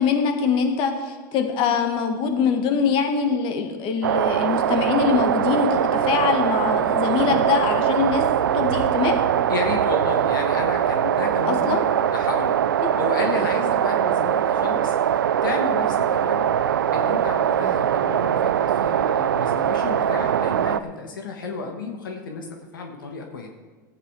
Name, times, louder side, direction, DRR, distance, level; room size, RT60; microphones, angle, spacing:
voice 1, 0.0-8.2 8.5-9.2 11.5-11.8, left 6 dB, 50° left, 5 dB, 1.7 m, -23 dB
sound 1, 4.0-20.8, right 9 dB, 90° right, 0.4 m, -22 dB
voice 2, 9.5-11.8 12.1-15.0 15.4-16.5 16.9-22.5 22.7-23.5, left 4 dB, 90° left, 3 dB, 1.5 m, -32 dB
14.5 x 8.8 x 4.8 m, 1.4 s
hypercardioid pair, 95°, 11 cm